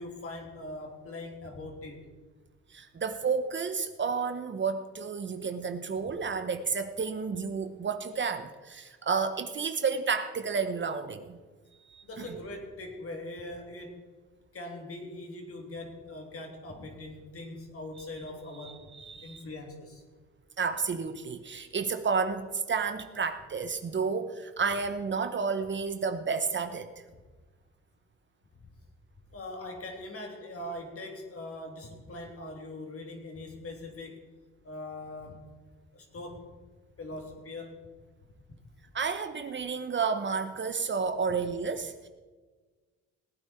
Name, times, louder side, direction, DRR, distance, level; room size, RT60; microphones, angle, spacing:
voice 1, 0.0-2.1 12.0-14.0 14.5-18.9 19.2-20.0 28.6-28.7 29.3-34.3 34.6-35.5 35.9-36.6 37.0-37.9, left 2 dB, 50° left, 2 dB, 3.0 m, -42 dB
voice 2, 2.7-11.4 11.9-12.4 18.9-19.4 20.6-26.9 38.9-42.1, right 5 dB, 40° right, 9 dB, 1.0 m, -31 dB
18.5 x 8.8 x 4.5 m, 1.3 s
cardioid pair, 90°, 30 cm